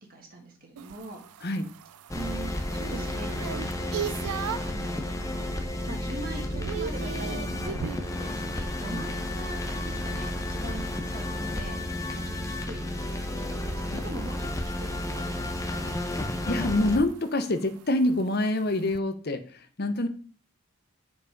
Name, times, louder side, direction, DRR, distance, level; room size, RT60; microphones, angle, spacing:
voice 1, 0.1-1.4 2.1-3.3 4.6-5.3 5.9-12.9 13.3-15.9, right 2 dB, 40° right, 1 dB, 1.8 m, -42 dB
sound 1, 0.8-4.8 5.3-5.7 6.0-8.1 10.6-19.0, right 8 dB, 85° right, 0.4 m, -40 dB
sound 2, 2.1-17.0, left 1 dB, 15° left, 0.8 m, -32 dB
voice 2, 16.5-20.1, left 1 dB, 45° left, 9 dB, 0.8 m, -26 dB
7.4 x 5.1 x 5.2 m, 0.42 s
head